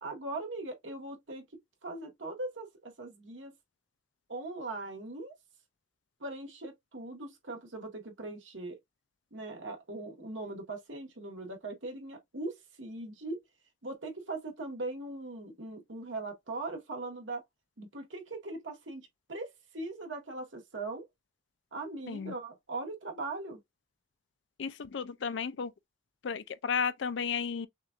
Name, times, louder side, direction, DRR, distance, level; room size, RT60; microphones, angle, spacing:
voice 1, 0.0-1.4 1.8-3.5 4.3-5.3 6.2-8.8 9.3-13.4 13.8-17.4 17.8-21.1 21.7-23.6, right 2 dB, 80° right, 1.5 m, -40 dB
voice 2, 24.6-25.7 26.2-27.7, left 6 dB, 65° left, 0.4 m, -33 dB
6.3 x 2.5 x 2.4 m
head